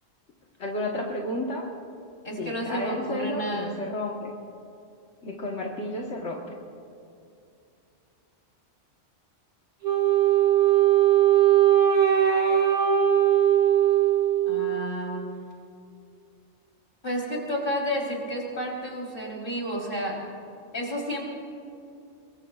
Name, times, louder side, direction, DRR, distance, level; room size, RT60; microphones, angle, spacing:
voice 1, 0.6-1.7 2.4-4.3 5.2-6.4, left 1 dB, 75° left, -2 dB, 1.7 m, -32 dB
voice 2, 2.2-3.8 14.4-15.3 17.0-20.2 20.7-21.2, equal, 45° left, -2 dB, 4.0 m, -31 dB
Wind instrument woodwind instrument, 9.8-14.9, right 11 dB, 50° right, 2.1 m, -20 dB
25.5 x 22.5 x 2.4 m, 2.6 s
omnidirectional pair, 1.2 m